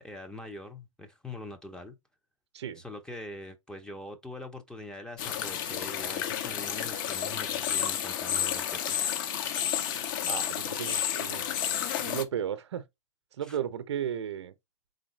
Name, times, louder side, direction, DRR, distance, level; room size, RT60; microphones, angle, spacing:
voice 1, 0.0-2.0 2.8-9.0 13.4-13.6, left 1 dB, 5° left, 0.6 m, -43 dB
sound 1, 5.2-12.2, left 9 dB, 40° left, 0.7 m, -31 dB
voice 2, 10.2-11.6 12.0-12.8 13.4-14.5, right 9 dB, 55° right, 0.7 m, -34 dB
3.9 x 3.7 x 3.1 m
figure-of-eight pair, 115°, 17 cm